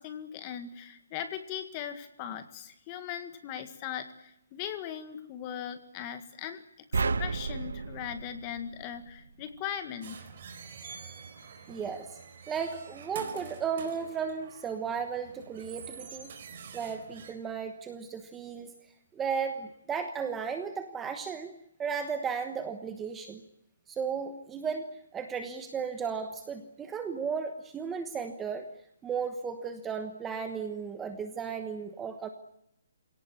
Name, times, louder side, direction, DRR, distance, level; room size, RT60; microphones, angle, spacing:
voice 1, 0.0-6.6 6.9-10.2, left 9 dB, 20° left, 9 dB, 1.8 m, -39 dB
sound 1, 6.9-9.3, right 4 dB, 75° right, 1.4 m, -32 dB
sound 2, 10.0-17.3, right 6 dB, 35° right, 4.2 m, -47 dB
voice 2, 11.7-12.1 12.5-16.3 16.7-18.7 19.2-21.5 21.8-23.4 23.9-24.9 25.1-28.7 29.0-32.3, right 6 dB, 10° right, 7 dB, 1.2 m, -35 dB
26.5 x 18.0 x 9.9 m, 0.80 s
hypercardioid pair, 175°, 0 cm